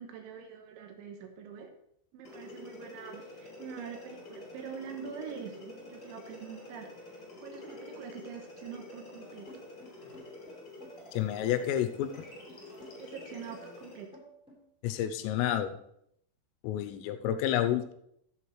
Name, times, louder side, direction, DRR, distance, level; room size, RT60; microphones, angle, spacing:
voice 1, 0.0-1.7 2.1-7.1 7.4-9.5 12.9-14.1, right 7 dB, 75° right, 5 dB, 3.0 m, -44 dB
sound 1, 2.2-14.1, left 2 dB, 30° left, 3.1 m, -48 dB
sound 2, 9.5-14.6, right 1 dB, ahead, 2.9 m, -53 dB
voice 2, 11.2-12.1 14.8-15.7 16.6-17.9, left 11 dB, 85° left, 9 dB, 3.3 m, -29 dB
14.0 x 7.9 x 3.2 m, 0.73 s
omnidirectional pair, 5.9 m